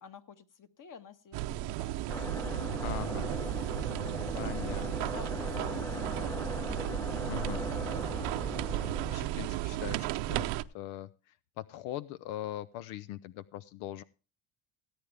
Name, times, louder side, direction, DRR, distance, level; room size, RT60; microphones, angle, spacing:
voice 1, 0.0-1.4 1.8-2.0 3.5-3.9 4.2-4.9 5.1-6.4, left 7 dB, 40° left, 10 dB, 1.6 m, -52 dB
sound 1, 1.3-10.6, right 14 dB, 85° right, 0.9 m, -34 dB
sound 2, 2.1-9.2, left 1 dB, 5° left, 0.6 m, -38 dB
voice 2, 2.8-3.3 4.3-5.1 7.3-7.9 8.6-10.5 10.7-14.0, left 13 dB, 85° left, 16 dB, 0.8 m, -41 dB
17.5 x 9.0 x 3.4 m, 0.34 s
cardioid pair, 120°, 48 cm